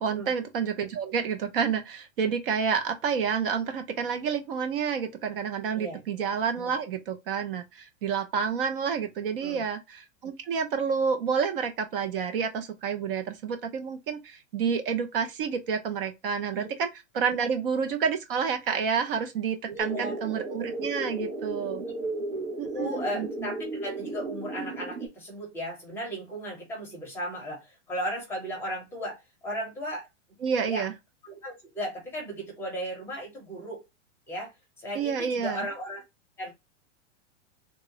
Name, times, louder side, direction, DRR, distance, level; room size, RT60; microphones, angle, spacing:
voice 1, 0.0-16.9 17.1-21.8 22.6-23.3 30.4-30.9 34.9-35.7, right 6 dB, 45° right, 0.5 m, -29 dB
voice 2, 19.7-20.1 22.7-30.1 30.7-30.9 31.2-33.8 34.3-34.5 34.8-36.0 36.4-36.5, equal, 5° left, 0.6 m, -35 dB
sound 1, 19.8-25.1, right 2 dB, 85° right, 1.4 m, -34 dB
3.5 x 2.0 x 2.8 m
supercardioid pair, 165°, 38 cm